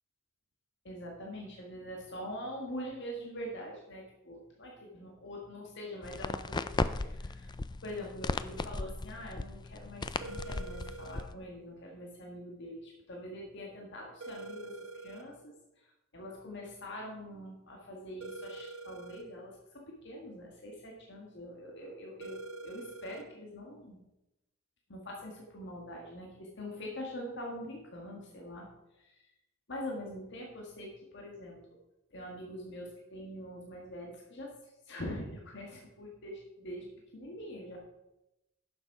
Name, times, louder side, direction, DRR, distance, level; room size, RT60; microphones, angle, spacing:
voice 1, 0.8-7.5 7.8-24.0 24.9-28.7 29.0-29.3 29.7-31.6 32.1-34.5 34.9-36.9 37.1-37.8, equal, 55° left, -1 dB, 1.7 m, -44 dB
sound 1, 6.0-11.3, left 3 dB, 20° left, 0.3 m, -36 dB
sound 2, 10.2-11.2 14.2-15.2 18.2-19.2 22.2-23.2, right 3 dB, 90° right, 1.2 m, -44 dB
11.5 x 6.8 x 4.8 m, 0.92 s
head